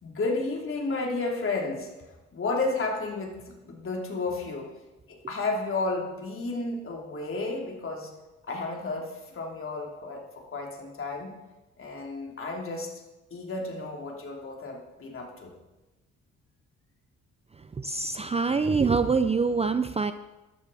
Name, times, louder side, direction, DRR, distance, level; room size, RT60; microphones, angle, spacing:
voice 1, 0.0-4.7 5.1-8.1 8.5-11.3 11.8-12.9 13.3-15.5, left 3 dB, 45° left, 0 dB, 3.3 m, -32 dB
voice 2, 17.8-20.1, right 4 dB, 20° right, 11 dB, 0.5 m, -25 dB
13.5 x 11.5 x 4.2 m, 1.1 s
cardioid pair, 90°, 30 cm